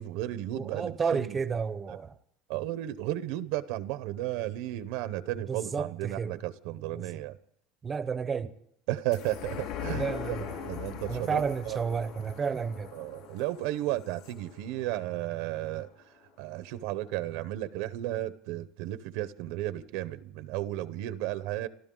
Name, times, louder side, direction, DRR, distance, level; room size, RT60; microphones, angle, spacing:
voice 1, 0.0-1.4 2.5-7.4 8.9-10.4 10.6-11.8 12.9-15.9 16.4-21.7, right 15 dB, 65° right, 0.8 m, -34 dB
voice 2, 0.5-2.1 5.5-6.4 6.9-7.1 7.8-8.5 9.9-12.9, right 6 dB, 15° right, 0.7 m, -32 dB
sound 1, 9.1-15.9 16.3-16.4, left 9 dB, 50° left, 4.4 m, -41 dB
27.5 x 13.0 x 3.8 m
cardioid pair, 175°, 0 cm